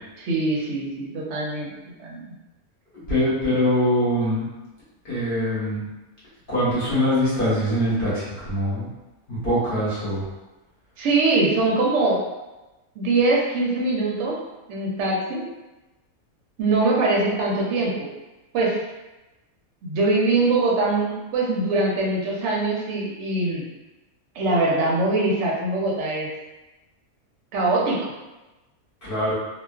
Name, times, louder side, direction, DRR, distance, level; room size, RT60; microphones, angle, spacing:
voice 1, 0.2-1.7 2.0-2.3 11.0-12.2 13.0-14.3 14.7-15.4 16.6-18.1 18.5-18.8 19.8-23.6 24.4-26.3 27.5-28.0, right 2 dB, 65° right, -4 dB, 0.8 m, -22 dB
voice 2, 3.1-4.4 5.0-5.8 6.5-8.9 9.3-10.2 29.0-29.3, equal, 45° left, -10 dB, 1.0 m, -23 dB
2.4 x 2.3 x 2.3 m, 1.1 s
omnidirectional pair, 1.5 m